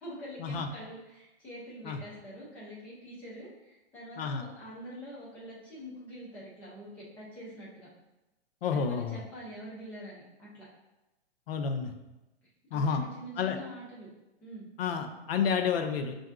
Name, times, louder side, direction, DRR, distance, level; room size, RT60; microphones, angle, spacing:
voice 1, 0.0-7.9 8.7-10.7 12.7-14.1 14.4-14.7, equal, 5° left, -8 dB, 0.3 m, -45 dB
voice 2, 8.6-9.2 11.5-11.9 12.7-13.0 13.4-13.6 14.8-16.2, left 6 dB, 60° left, 6 dB, 0.6 m, -30 dB
5.3 x 2.5 x 2.4 m, 0.99 s
hypercardioid pair, 150°, 33 cm